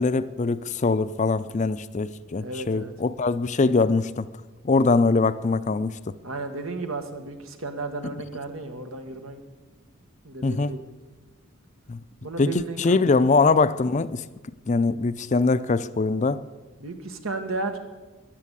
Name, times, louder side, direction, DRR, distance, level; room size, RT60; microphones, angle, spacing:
voice 1, 0.0-4.3 4.6-5.9 10.4-10.7 11.9-12.0 12.4-14.2 14.7-16.4, left 3 dB, 35° left, 0.5 m, -22 dB
voice 2, 2.4-2.9 6.2-9.4 10.2-10.9 12.2-13.3 16.8-17.8, right 3 dB, 85° right, 1.8 m, -34 dB
14.0 x 10.5 x 8.4 m
head